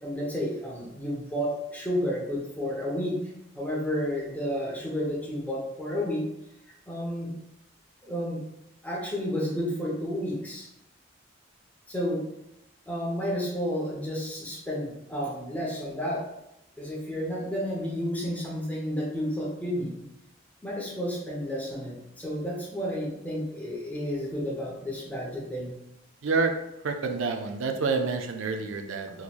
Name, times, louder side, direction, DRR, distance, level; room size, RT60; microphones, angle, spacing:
voice 1, 0.0-3.2 3.5-6.2 6.9-7.3 8.0-8.4 8.8-10.7 11.9-12.2 12.9-16.2 16.8-20.0 20.6-25.8 29.1-29.2, equal, 10° left, -4 dB, 0.8 m, -31 dB
voice 2, 26.2-26.6 26.8-29.2, right 4 dB, 85° right, 6 dB, 0.4 m, -28 dB
3.7 x 3.0 x 2.4 m, 0.84 s
head